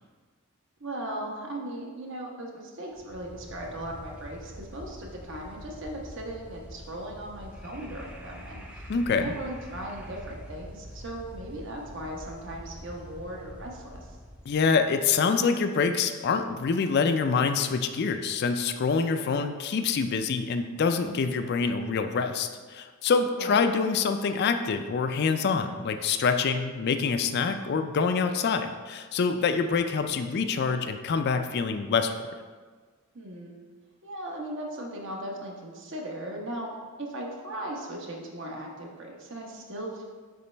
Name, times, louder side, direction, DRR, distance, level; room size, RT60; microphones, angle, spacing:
voice 1, 0.8-14.2 23.3-23.6 33.1-33.6 34.0-40.0, right 1 dB, 60° right, -1 dB, 1.0 m, -38 dB
sound 1, 2.9-14.9, equal, 5° right, 0.5 m, -45 dB
voice 2, 8.9-9.3 14.5-32.1, left 5 dB, 50° left, 7 dB, 0.3 m, -26 dB
6.9 x 4.2 x 3.3 m, 1.5 s
head